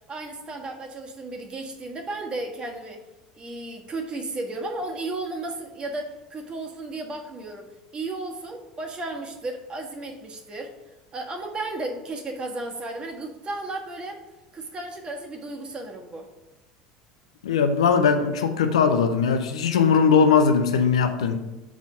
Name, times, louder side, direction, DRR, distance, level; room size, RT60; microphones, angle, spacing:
voice 1, 0.1-3.0 3.3-10.7 11.1-14.2 14.5-16.3, right 2 dB, 30° right, 2 dB, 1.4 m, -34 dB
voice 2, 17.4-21.4, left 6 dB, 85° left, 8 dB, 0.6 m, -20 dB
5.8 x 4.3 x 5.4 m, 1.0 s
hypercardioid pair, 80°, 3 cm